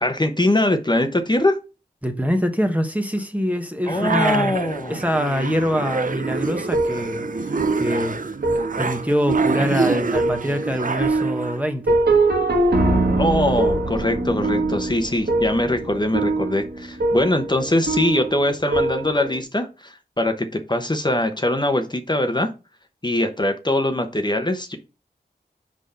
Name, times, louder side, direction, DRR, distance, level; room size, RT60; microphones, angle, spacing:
voice 1, 0.0-1.6 3.9-5.0 13.2-22.5 23.0-24.8, left 1 dB, 25° left, 1.0 m, -22 dB
voice 2, 2.0-4.5 4.9-7.3 7.7-8.2 8.5-12.0, equal, 10° right, 1.1 m, -24 dB
sound 1, 3.9-11.6, right 4 dB, 55° right, 0.6 m, -27 dB
sound 2, 6.2-19.4, right 2 dB, 75° right, 1.6 m, -23 dB
5.9 x 5.0 x 5.5 m
wide cardioid pair, 70°, 17 cm